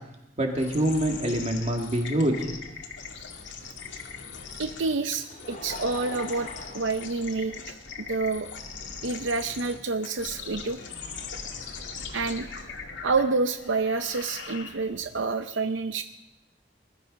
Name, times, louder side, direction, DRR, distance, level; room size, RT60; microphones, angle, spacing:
voice 1, 0.4-2.5, right 1 dB, 35° right, 2 dB, 2.4 m, -25 dB
sound 1, 0.6-15.1, left 5 dB, 75° left, 2.1 m, -41 dB
voice 2, 4.6-8.5 9.0-10.8 12.1-12.5 13.0-16.0, right 3 dB, 85° right, 9 dB, 0.7 m, -28 dB
Laughter, 4.9-8.0 8.8-8.9 10.4-10.5, left 2 dB, 45° left, 2.5 m, -43 dB
21.0 x 12.5 x 5.3 m, 0.92 s
head